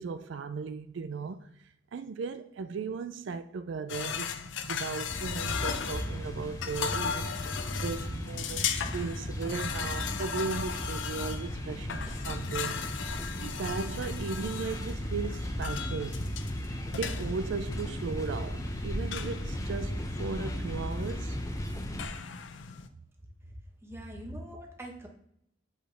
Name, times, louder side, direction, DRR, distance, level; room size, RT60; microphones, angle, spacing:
voice 1, 0.0-4.3 4.6-16.2 16.9-21.4, right 5 dB, 70° right, 0.4 m, -37 dB
sound 1, 3.9-22.9, left 6 dB, 75° left, 0.5 m, -37 dB
sound 2, 5.1-22.1, equal, 15° left, 0.5 m, -36 dB
voice 2, 23.8-25.1, right 1 dB, 15° right, 0.9 m, -42 dB
7.8 x 4.2 x 3.3 m
head